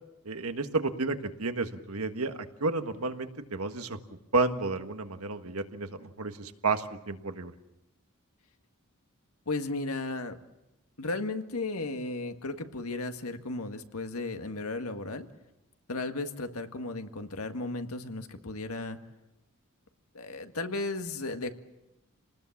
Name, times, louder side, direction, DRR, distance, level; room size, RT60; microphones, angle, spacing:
voice 1, 0.2-4.0 4.3-7.5, right 3 dB, 85° right, 7 dB, 1.6 m, -31 dB
voice 2, 9.4-10.4 11.0-15.3 15.9-19.0 20.1-21.5, left 2 dB, 85° left, 7 dB, 1.8 m, -35 dB
27.5 x 19.5 x 7.3 m, 0.91 s
head